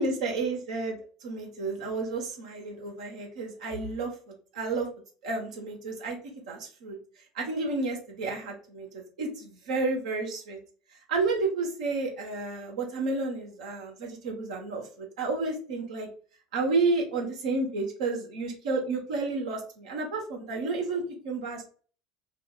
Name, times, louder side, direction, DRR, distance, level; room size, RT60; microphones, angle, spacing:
voice 1, 0.0-4.9 5.2-6.2 6.5-7.0 7.3-10.6 10.9-16.1 16.5-21.7, right 3 dB, 70° right, 0 dB, 0.9 m, -31 dB
2.5 x 2.2 x 3.7 m, 0.41 s
figure-of-eight pair, 65°, 4 cm